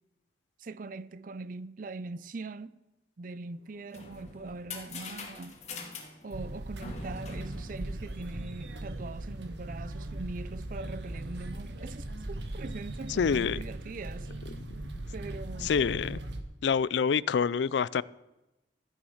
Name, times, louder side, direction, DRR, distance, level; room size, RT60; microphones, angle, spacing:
voice 1, 0.6-2.8 3.2-5.6 6.2-14.3 15.1-15.7, right 3 dB, 50° right, 0.5 m, -41 dB
sound 1, 3.6-8.6, left 4 dB, 40° left, 2.4 m, -44 dB
sound 2, 6.3-16.4, right 1 dB, 75° right, 1.3 m, -39 dB
voice 2, 13.2-13.6 14.9-15.0 15.6-16.2 16.6-18.0, left 6 dB, 75° left, 0.4 m, -27 dB
14.0 x 10.0 x 5.6 m
head